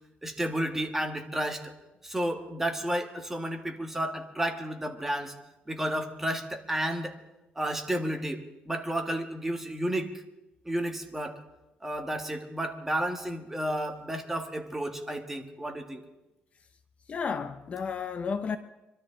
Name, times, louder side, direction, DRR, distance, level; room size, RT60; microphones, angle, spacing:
voice 1, 0.2-1.6 2.0-5.3 5.7-7.1 7.5-10.1 10.6-11.4 11.8-16.0, right 1 dB, 10° right, 1.6 m, -32 dB
voice 2, 17.1-18.6, left 5 dB, 35° left, 0.7 m, -32 dB
25.0 x 12.5 x 3.8 m
cardioid pair, 140°, 4 cm